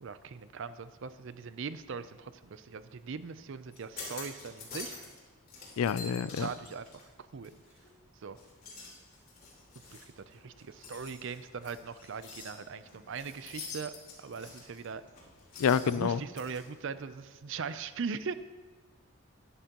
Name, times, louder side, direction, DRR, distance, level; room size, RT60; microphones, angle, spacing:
voice 1, 0.0-5.0 6.2-6.9 7.3-7.5 8.2-8.4 9.9-13.9 14.2-15.0 15.8-18.3, right 5 dB, 60° right, 13 dB, 0.5 m, -40 dB
sound 1, 3.7-5.2 5.5-7.9 8.3-16.6, left 4 dB, 45° left, 3.0 m, -47 dB
voice 2, 5.8-6.5 15.6-16.2, left 7 dB, 75° left, 17 dB, 0.4 m, -28 dB
12.0 x 11.0 x 2.9 m, 1.3 s
head